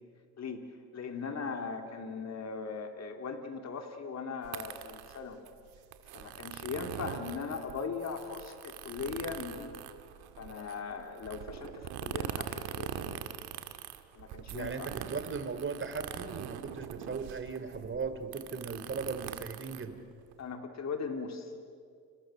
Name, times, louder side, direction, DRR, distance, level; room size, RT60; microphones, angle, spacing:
voice 1, 0.9-5.4 6.1-9.8 10.4-13.2 14.1-14.9 20.4-21.5, left 5 dB, 45° left, 5 dB, 3.4 m, -39 dB
sound 1, 4.4-20.5, right 12 dB, 85° right, 1.8 m, -42 dB
voice 2, 14.5-19.9, right 4 dB, 35° right, 8 dB, 3.2 m, -38 dB
30.0 x 29.0 x 6.6 m, 2.2 s
cardioid pair, 90°, 37 cm